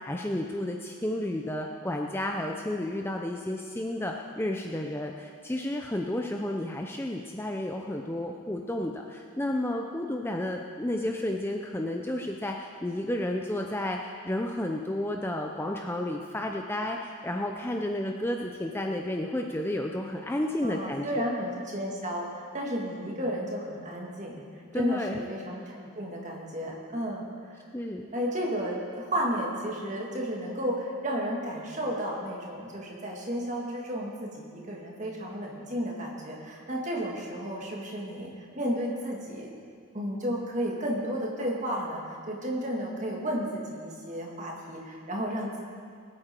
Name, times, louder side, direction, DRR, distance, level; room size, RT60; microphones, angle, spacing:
voice 1, 0.0-21.2 24.7-25.2 27.7-28.1, left 1 dB, 10° left, 2 dB, 0.5 m, -32 dB
voice 2, 20.6-22.3 22.5-24.4 24.7-27.2 28.1-39.5 39.9-45.6, equal, 35° right, -2 dB, 2.1 m, -33 dB
20.0 x 8.8 x 4.5 m, 2.3 s
head